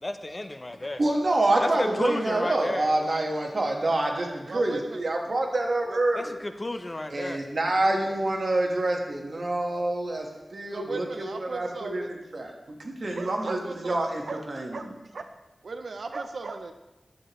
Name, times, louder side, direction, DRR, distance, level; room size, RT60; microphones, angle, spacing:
voice 1, 0.0-1.0 1.6-2.9 6.2-7.4, left 2 dB, 30° left, 8 dB, 0.5 m, -32 dB
voice 2, 1.0-6.3 7.1-12.0 12.3-14.2 14.5-14.8, right 2 dB, 55° right, 1 dB, 1.3 m, -27 dB
voice 3, 1.5-3.3 4.5-5.1 5.8-6.0 10.7-12.1 13.1-14.0 14.3-14.4 14.7-14.9 15.1-15.3 15.6-16.7, right 3 dB, 90° right, 7 dB, 0.5 m, -37 dB
11.0 x 7.8 x 3.0 m, 1.0 s
wide cardioid pair, 90°, 0 cm